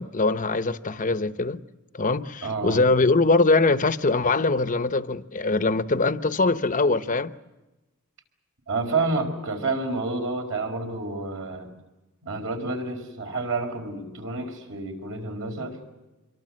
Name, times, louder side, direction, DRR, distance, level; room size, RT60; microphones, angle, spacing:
voice 1, 0.0-1.6 1.9-7.3, left 3 dB, 35° left, 0.9 m, -22 dB
voice 2, 2.4-2.8 8.7-11.7 12.2-15.8, right 3 dB, 65° right, 5.0 m, -29 dB
26.5 x 23.0 x 7.6 m
head